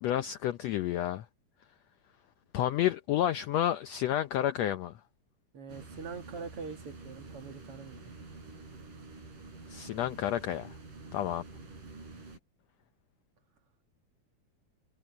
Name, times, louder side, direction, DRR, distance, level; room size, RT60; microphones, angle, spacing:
voice 1, 0.0-1.2 2.5-5.0 9.7-10.7 11.1-11.4, left 12 dB, 75° left, 1.5 m, -30 dB
voice 2, 5.5-8.0, right 5 dB, 50° right, 2.2 m, -43 dB
sound 1, 5.7-12.4, right 3 dB, 80° right, 9.4 m, -48 dB
omnidirectional pair, 3.7 m